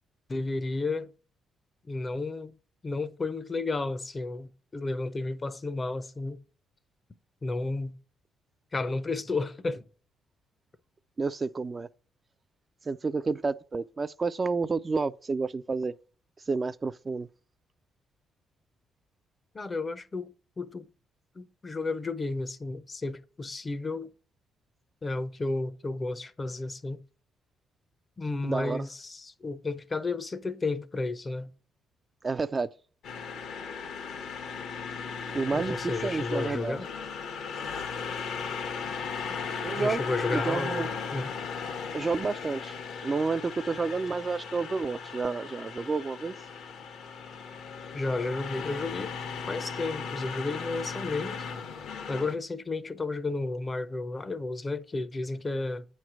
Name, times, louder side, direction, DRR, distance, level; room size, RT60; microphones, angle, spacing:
voice 1, 0.3-1.1 1.9-2.5 2.8-6.4 7.4-8.0 8.7-9.8 19.5-20.9 21.4-24.1 25.0-27.0 28.2-31.5 35.5-36.9 39.3-39.4 39.7-41.3 47.9-49.1 49.5-51.4 52.1-55.9, left 3 dB, 30° left, 0.6 m, -32 dB
voice 2, 11.2-11.9 12.9-15.9 16.5-17.3 28.4-28.9 32.2-32.7 35.3-36.8 39.6-40.0 40.3-40.9 41.9-42.7 43.0-46.3, right 4 dB, 30° right, 0.3 m, -30 dB
sound 1, 33.0-52.4, left 5 dB, 75° left, 1.1 m, -37 dB
8.5 x 3.2 x 6.0 m
cardioid pair, 90°, 0 cm